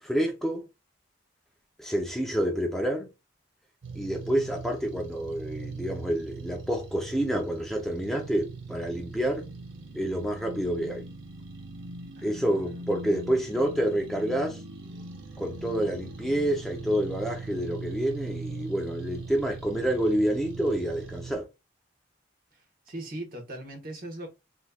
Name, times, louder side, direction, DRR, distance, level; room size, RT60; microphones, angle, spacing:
voice 1, 0.0-0.7 1.8-3.1 3.9-9.5 9.9-11.0 12.2-14.6 15.4-21.5, right 1 dB, ahead, 0.5 m, -28 dB
sound 1, 3.8-21.4, right 3 dB, 80° right, 0.7 m, -41 dB
voice 2, 12.1-12.8 22.5-24.3, right 1 dB, 50° right, 1.2 m, -40 dB
3.6 x 3.0 x 2.3 m
head